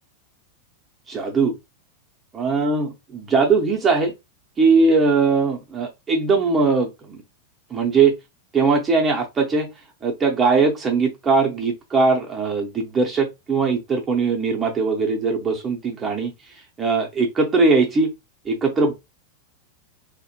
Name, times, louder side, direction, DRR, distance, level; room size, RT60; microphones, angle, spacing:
voice 1, 1.1-1.5 2.3-4.1 4.6-7.2 7.7-8.1 8.5-9.7 10.0-16.3 16.8-18.1 18.4-18.9, right 4 dB, 20° right, 0.6 m, -20 dB
2.1 x 2.0 x 2.9 m
figure-of-eight pair, 90°, 0 cm